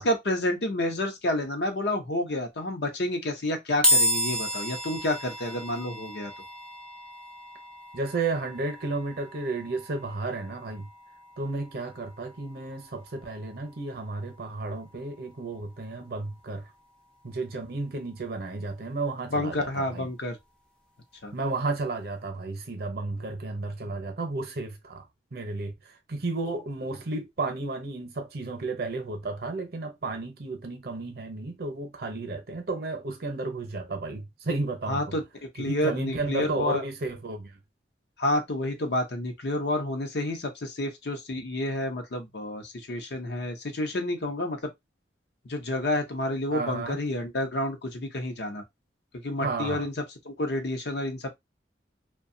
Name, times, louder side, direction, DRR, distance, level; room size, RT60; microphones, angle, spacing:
voice 1, 0.0-6.3 19.3-20.4 21.2-21.3 34.9-36.8 38.2-44.6 45.5-48.6 49.2-49.9 50.2-51.3, left 1 dB, 65° left, 0.7 m, -29 dB
sound 1, 3.8-17.2, equal, 5° left, 0.4 m, -33 dB
voice 2, 7.9-10.9 11.4-16.7 17.2-20.1 21.3-25.1 25.3-25.7 26.1-35.2 35.6-37.6 46.5-47.0 49.4-49.9, right 3 dB, 55° right, 0.7 m, -33 dB
2.7 x 2.2 x 2.6 m
head